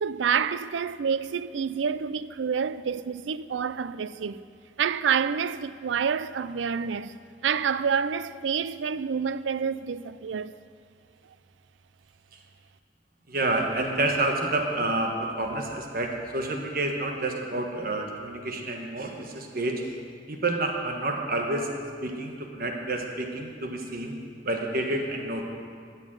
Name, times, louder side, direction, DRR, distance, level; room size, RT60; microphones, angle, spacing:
voice 1, 0.0-4.4 4.8-7.1 7.4-10.6, right 6 dB, 90° right, 0.4 m, -28 dB
voice 2, 13.3-19.9 20.3-21.7 22.0-24.2 24.4-25.4, right 2 dB, 55° right, 1.3 m, -29 dB
12.5 x 7.3 x 9.0 m
head